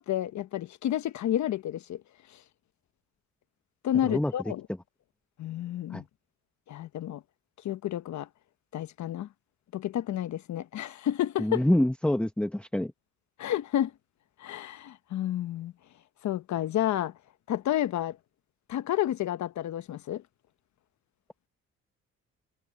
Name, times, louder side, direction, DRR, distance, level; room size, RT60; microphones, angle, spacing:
voice 1, 0.0-2.0 3.8-4.7 5.4-6.0 6.7-7.2 7.6-8.3 8.7-9.3 9.7-11.6 13.4-13.9 14.4-15.7 16.2-17.1 17.5-18.2 18.7-20.2, left 12 dB, 70° left, 1.1 m, -30 dB
voice 2, 11.4-12.9, left 1 dB, 5° left, 0.9 m, -26 dB
cardioid pair, 90°, 30 cm